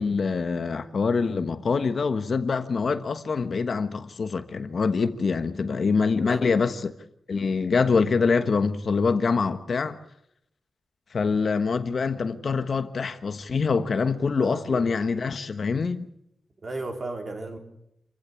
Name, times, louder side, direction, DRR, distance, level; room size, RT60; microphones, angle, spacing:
voice 1, 0.0-6.9 7.3-10.0 11.1-16.1, left 5 dB, 45° left, 1.2 m, -25 dB
voice 2, 6.2-6.6 14.3-14.9 16.6-17.6, right 2 dB, 35° right, 3.8 m, -35 dB
27.5 x 15.5 x 8.5 m
wide cardioid pair, 155°, 0 cm